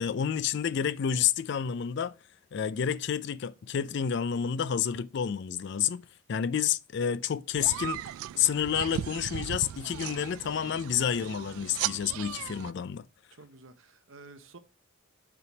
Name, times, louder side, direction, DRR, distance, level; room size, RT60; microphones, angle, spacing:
voice 1, 0.0-2.1 2.5-6.0 6.3-8.0 8.4-13.0, left 8 dB, 55° left, 0.3 m, -29 dB
sound 1, 7.5-12.7, right 11 dB, 85° right, 0.3 m, -37 dB
voice 2, 13.3-14.6, right 3 dB, 65° right, 0.9 m, -51 dB
6.8 x 3.4 x 5.8 m
head